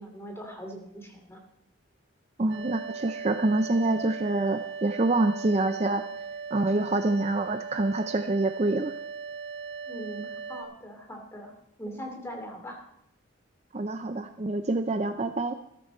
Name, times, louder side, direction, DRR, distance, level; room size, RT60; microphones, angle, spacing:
voice 1, 0.0-1.4 9.9-11.5 11.8-12.8, equal, 10° left, 3 dB, 2.7 m, -41 dB
voice 2, 2.4-6.0 6.5-8.9 13.7-15.5, right 2 dB, 30° right, 8 dB, 0.5 m, -26 dB
sound 1, 2.5-10.6, right 5 dB, 55° right, 1.9 m, -38 dB
14.0 x 13.5 x 4.3 m, 0.78 s
head